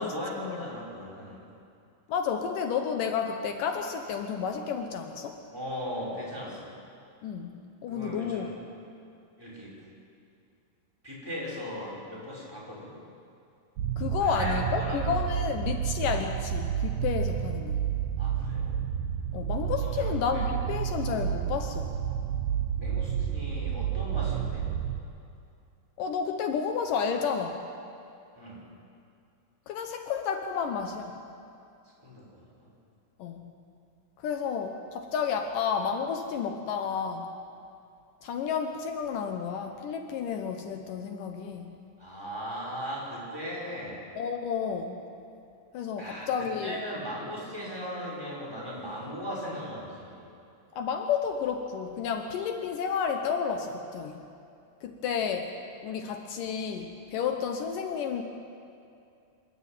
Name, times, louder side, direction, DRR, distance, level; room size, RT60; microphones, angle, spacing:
voice 1, 0.0-1.4 5.5-6.7 7.9-8.5 9.4-9.8 11.0-12.9 14.2-15.1 18.2-18.7 19.8-20.4 22.7-24.7 28.3-28.6 32.0-32.7 42.0-44.0 46.0-50.3, equal, 5° right, -5 dB, 5.8 m, -38 dB
voice 2, 2.1-5.4 7.2-8.5 14.0-17.8 19.3-21.9 26.0-27.7 29.7-31.2 33.2-33.5 34.2-37.3 38.2-41.7 44.2-45.0 45.7-46.8 50.8-54.2 54.8-55.5 55.8-58.2, left 6 dB, 75° left, 5 dB, 2.5 m, -31 dB
sound 1, 13.8-25.0, right 9 dB, 75° right, 2.3 m, -30 dB
26.0 x 12.5 x 9.1 m, 2.5 s
omnidirectional pair, 3.9 m